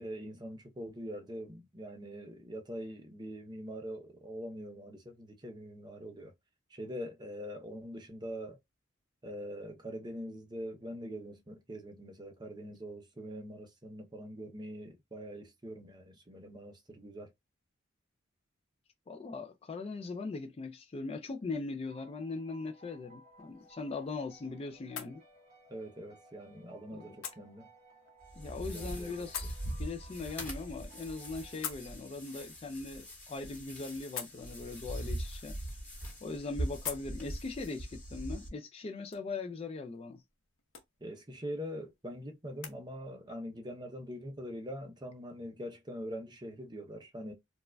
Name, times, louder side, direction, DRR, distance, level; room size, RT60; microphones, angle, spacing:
voice 1, 0.0-6.3 6.7-8.6 9.2-17.3 25.7-27.7 28.7-29.3 41.0-47.3, equal, 20° right, 0.6 m, -43 dB
voice 2, 19.1-25.2 26.9-27.1 28.4-35.6 36.2-40.2, left 3 dB, 30° left, 0.3 m, -40 dB
sound 1, 21.9-32.3, right 1 dB, 45° right, 1.5 m, -60 dB
sound 2, 23.3-42.8, left 8 dB, 70° left, 0.9 m, -50 dB
sound 3, 28.2-38.5, right 1 dB, 10° left, 1.6 m, -42 dB
4.5 x 2.3 x 2.2 m
head